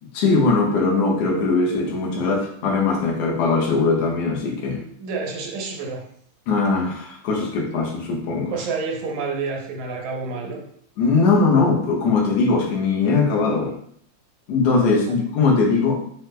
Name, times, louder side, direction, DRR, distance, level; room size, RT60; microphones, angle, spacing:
voice 1, 0.1-4.8 6.5-8.5 11.0-13.7 14.5-16.0, left 4 dB, 70° left, -1 dB, 1.8 m, -20 dB
voice 2, 4.8-6.0 8.5-10.6 15.0-15.1, right 4 dB, 80° right, 0 dB, 2.1 m, -29 dB
5.8 x 2.1 x 3.2 m, 0.64 s
omnidirectional pair, 3.4 m